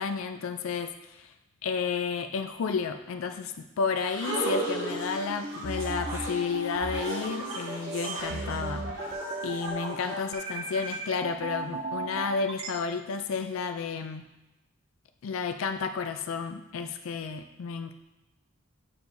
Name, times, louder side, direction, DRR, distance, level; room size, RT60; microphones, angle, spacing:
voice 1, 0.0-1.3 1.6-9.2 9.4-14.2 15.2-17.9, left 5 dB, 85° left, 7 dB, 0.4 m, -32 dB
sound 1, 4.0-10.9, right 1 dB, 75° right, 2.0 m, -37 dB
sound 2, 4.3-12.7, right 2 dB, 30° right, 0.5 m, -36 dB
8.6 x 4.6 x 2.6 m, 1.0 s
head